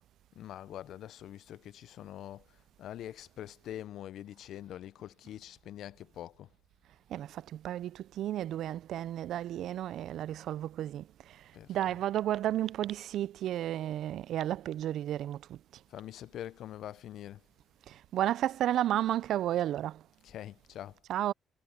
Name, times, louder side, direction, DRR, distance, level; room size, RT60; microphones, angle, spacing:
voice 1, 0.4-6.5 11.5-12.0 15.9-17.4 20.2-21.0, left 11 dB, 75° left, 0.5 m, -44 dB
voice 2, 7.1-15.6 17.9-20.0 21.1-21.3, right 12 dB, 75° right, 0.3 m, -32 dB
cardioid pair, 90°, 0 cm